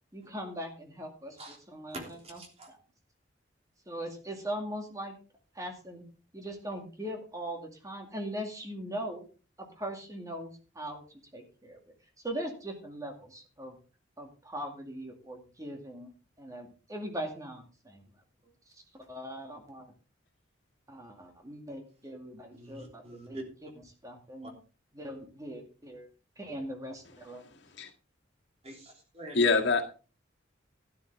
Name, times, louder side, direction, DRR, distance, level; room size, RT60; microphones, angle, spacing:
voice 1, 0.1-1.4 1.7-2.0 2.3-2.4 2.7-2.8 3.9-5.1 5.5-6.0 6.3-9.2 9.6-11.0 11.3-11.8 12.2-13.8 14.2-16.1 16.4-18.0 18.9-19.9 20.9-23.4 24.0-24.5 25.0-26.1 26.4-27.4, equal, 20° right, 2.2 m, -40 dB
voice 2, 1.9-2.7 22.5-23.4 24.4-24.5 28.6-29.6, right 1 dB, 35° right, 3.1 m, -45 dB
voice 3, 29.3-29.8, left 4 dB, 65° left, 1.9 m, -25 dB
12.5 x 10.5 x 3.5 m
head